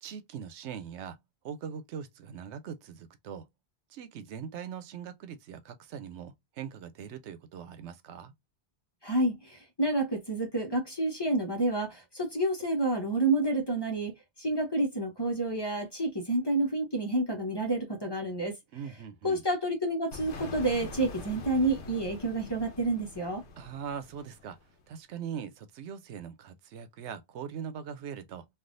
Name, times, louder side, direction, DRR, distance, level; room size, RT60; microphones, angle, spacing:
voice 1, 0.0-1.2 1.4-3.5 3.9-8.3 18.7-19.5 23.6-24.6 24.9-28.5, right 7 dB, 90° right, 0.9 m, -41 dB
voice 2, 9.0-18.5 19.2-23.4, right 2 dB, 25° left, 0.7 m, -29 dB
sound 1, 20.1-24.8, left 2 dB, 85° left, 1.0 m, -44 dB
3.3 x 2.4 x 2.4 m
omnidirectional pair, 1.1 m